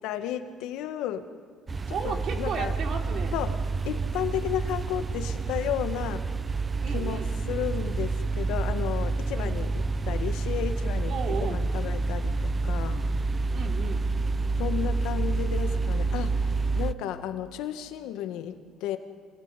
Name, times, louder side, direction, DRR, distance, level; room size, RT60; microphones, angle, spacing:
voice 1, 0.0-1.3 1.9-2.7 3.3-6.2 6.9-13.0 14.6-19.0, left 11 dB, 80° left, 8 dB, 1.7 m, -33 dB
sound 1, 1.7-16.9, right 3 dB, 25° right, 0.7 m, -28 dB
voice 2, 1.9-3.3 6.8-7.3 9.3-9.5 11.1-11.6 13.5-14.1, right 6 dB, 55° right, 3 dB, 3.3 m, -34 dB
26.5 x 20.0 x 9.9 m, 2.1 s
cardioid pair, 105°, 0 cm